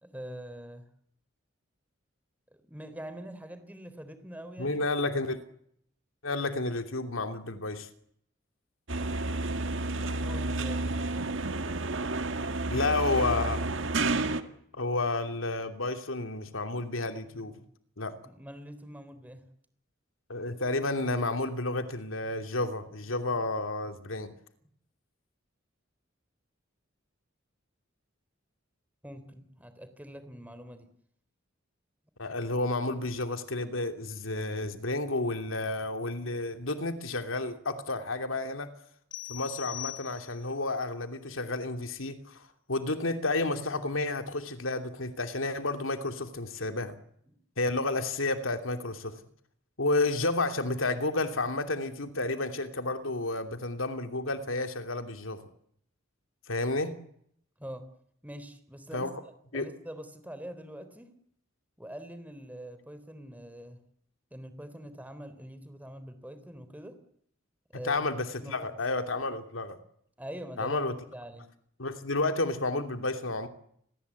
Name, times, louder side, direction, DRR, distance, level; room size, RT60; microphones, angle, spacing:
voice 1, 0.0-0.8 2.7-4.8 9.9-11.3 18.2-19.4 29.0-30.9 47.3-47.4 57.6-57.9 58.2-61.1 61.8-63.8 64.3-67.0 67.7-68.1 68.4-68.8 70.2-70.8 71.1-71.5, equal, 10° right, 11 dB, 3.5 m, -44 dB
voice 2, 4.6-5.4 6.2-7.9 12.7-13.6 14.7-17.6 18.0-18.2 20.3-24.3 32.2-38.7 39.3-47.0 47.6-49.2 49.8-55.4 56.5-56.9 58.9-59.1 59.5-59.7 67.7-69.8 70.6-71.0 71.8-73.5, left 2 dB, 85° left, 7 dB, 2.8 m, -31 dB
sound 1, 8.9-14.4, right 2 dB, 65° right, 1.9 m, -30 dB
sound 2, 39.1-40.6, left 17 dB, 65° left, 1.3 m, -41 dB
29.5 x 22.5 x 8.4 m, 0.70 s
head